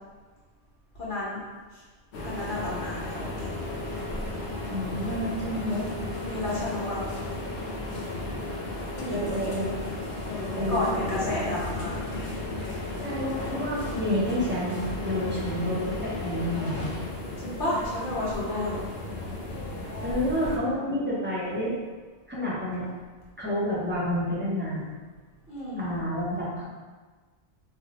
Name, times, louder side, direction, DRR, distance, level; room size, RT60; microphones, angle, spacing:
voice 1, 0.9-1.4 1.7-1.8 2.2-3.6 6.2-7.0 9.0-9.5 10.2-12.0 17.4-18.9 20.2-20.4 25.5-25.9, left 1 dB, 45° left, -8 dB, 1.1 m, -32 dB
sound 1, 2.1-20.6, left 2 dB, 70° left, 0.8 m, -34 dB
voice 2, 4.7-5.9 9.1-9.8 10.6-11.3 13.0-16.9 20.0-21.8 22.3-22.9 23.4-24.8 25.8-26.6, left 1 dB, 15° right, -8 dB, 0.3 m, -29 dB
2.6 x 2.0 x 3.9 m, 1.4 s
omnidirectional pair, 1.2 m